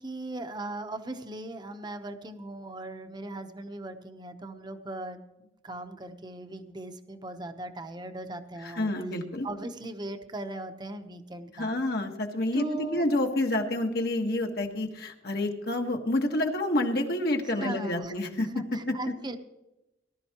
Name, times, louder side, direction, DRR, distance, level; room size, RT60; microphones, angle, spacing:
voice 1, 0.0-8.9 9.4-11.7 12.5-13.1 17.4-19.4, right 2 dB, 25° right, 7 dB, 0.9 m, -38 dB
voice 2, 8.6-9.5 11.5-12.7 12.9-19.0, left 1 dB, 60° left, 3 dB, 1.6 m, -28 dB
19.0 x 12.0 x 3.0 m, 0.93 s
head